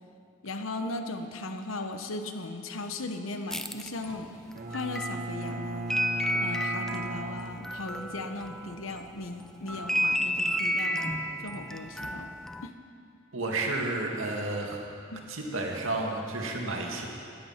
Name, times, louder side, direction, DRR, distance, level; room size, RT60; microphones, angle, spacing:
voice 1, 0.4-4.3 4.7-6.0 6.4-12.3 12.6-12.7 15.1-15.2, left 2 dB, 85° left, 6 dB, 1.1 m, -37 dB
sound 1, 3.5-9.0 9.4-12.7, equal, ahead, 0.4 m, -32 dB
Bowed string instrument, 4.5-8.4, right 2 dB, 45° right, 0.6 m, -37 dB
voice 2, 13.3-14.8 15.3-17.1, right 2 dB, 85° right, 0 dB, 2.2 m, -31 dB
16.5 x 11.5 x 5.8 m, 2.5 s
head